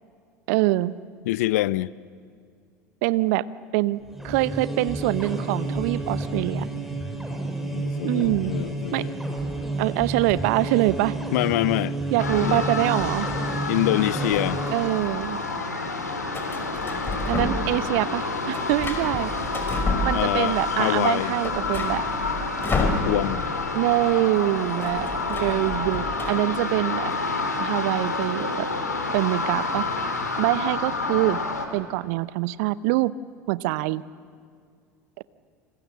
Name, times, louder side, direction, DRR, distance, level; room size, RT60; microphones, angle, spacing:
voice 1, 0.5-0.9 3.0-3.4 3.7-6.7 8.0-8.5 8.9-9.0 9.8-11.2 12.1-13.3 14.7-15.4 17.3-19.3 20.0-22.0 23.7-27.1 27.6-28.7 29.1-29.9 30.4-31.4 31.7-33.1 33.5-34.0 35.2-35.3, right 18 dB, 60° right, 0.8 m, -24 dB
voice 2, 1.3-1.9 7.7-9.1 11.3-11.9 12.4-12.6 13.7-14.6 20.1-21.3 22.8-23.4, left 17 dB, 65° left, 0.6 m, -25 dB
sound 1, 4.0-15.1, right 2 dB, 5° right, 5.9 m, -30 dB
sound 2, 12.2-31.7, left 3 dB, 90° left, 2.5 m, -29 dB
sound 3, 14.6-15.2 16.3-17.8 18.1-20.6 20.9-21.0 21.3-23.5 23.8-24.0 24.2-26.3, left 2 dB, 25° left, 5.5 m, -30 dB
28.5 x 27.0 x 7.5 m
figure-of-eight pair, 70°, 9 cm